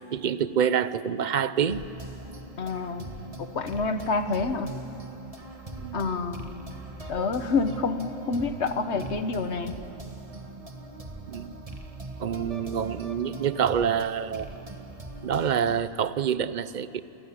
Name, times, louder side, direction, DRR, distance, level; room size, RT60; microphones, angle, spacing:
voice 1, 0.1-1.9 5.8-6.1 11.3-11.6 12.2-14.5 15.2-17.0, right 8 dB, 45° right, 15 dB, 0.7 m, -27 dB
sound 1, 1.7-15.8, right 2 dB, 30° right, 1.7 m, -41 dB
voice 2, 2.6-4.7 5.9-6.6 7.1-9.8, left 4 dB, 60° left, 9 dB, 1.3 m, -28 dB
28.5 x 15.5 x 9.8 m, 2.9 s
omnidirectional pair, 1.3 m